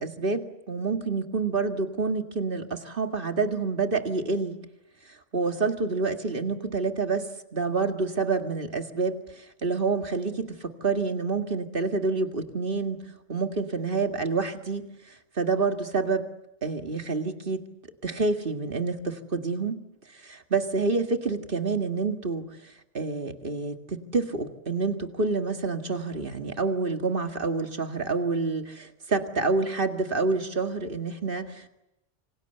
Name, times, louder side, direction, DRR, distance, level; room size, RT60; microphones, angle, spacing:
voice 1, 0.0-4.5 5.3-13.0 13.3-16.3 16.6-17.6 18.0-19.8 20.2-22.5 22.9-31.7, right 4 dB, 50° right, 6 dB, 2.1 m, -28 dB
27.5 x 26.0 x 8.0 m, 0.89 s
omnidirectional pair, 1.2 m